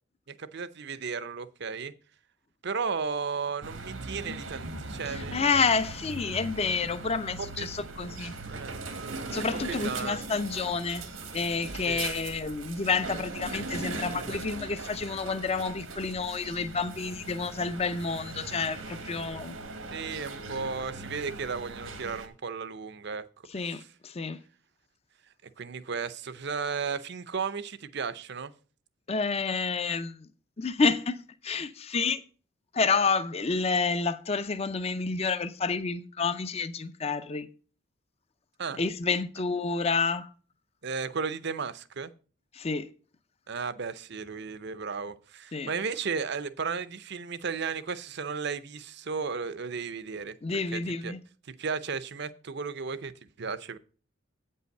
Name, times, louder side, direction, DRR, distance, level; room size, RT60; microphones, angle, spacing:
voice 1, 0.3-1.9 2.6-5.5 7.6-7.7 8.5-8.8 9.7-10.2 11.9-12.1 13.9-14.0 19.9-23.2 23.6-23.9 25.6-28.5 38.6-38.8 40.8-42.1 43.5-51.1 51.5-53.8, right 5 dB, 60° right, 0.7 m, -34 dB
sound 1, 3.6-22.3, right 2 dB, 90° right, 1.6 m, -39 dB
voice 2, 5.1-8.3 9.3-11.0 11.3-19.6 23.5-24.4 29.1-30.3 30.6-31.2 31.4-32.2 32.7-37.5 38.8-40.3 42.5-42.9 45.5-45.7 50.4-51.2, left 4 dB, 30° left, 0.5 m, -29 dB
8.5 x 5.5 x 6.6 m
head